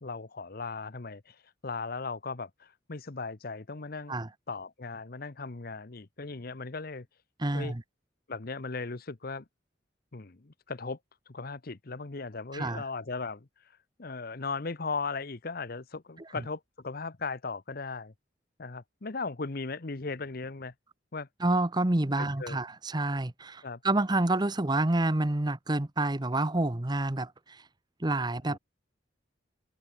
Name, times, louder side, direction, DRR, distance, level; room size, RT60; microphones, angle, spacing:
voice 1, 0.0-4.2 4.5-7.1 7.5-7.7 8.3-9.4 10.1-11.0 11.3-13.5 14.0-18.1 18.6-20.7 21.1-21.3 22.2-22.6 23.6-23.8 28.5-28.6, left 4 dB, 55° left, 1.0 m, -37 dB
voice 2, 7.4-7.8 12.5-12.8 21.4-27.6 28.0-28.6, right 2 dB, 25° right, 0.9 m, -28 dB
head